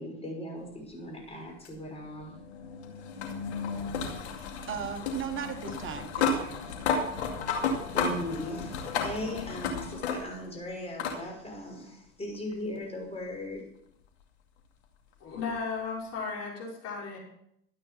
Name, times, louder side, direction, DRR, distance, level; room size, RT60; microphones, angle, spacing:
voice 1, 0.0-2.4 7.9-13.6, left 1 dB, 20° left, 0 dB, 6.4 m, -38 dB
sound 1, 1.6-10.5 11.0-11.2 12.5-12.6 15.5-15.6, left 5 dB, 90° left, 2.4 m, -33 dB
voice 2, 4.7-6.6, right 7 dB, 40° right, 6 dB, 1.4 m, -37 dB
voice 3, 15.2-17.2, left 5 dB, 50° left, -2 dB, 5.9 m, -35 dB
13.5 x 9.1 x 5.7 m, 0.74 s
supercardioid pair, 95°, 32 cm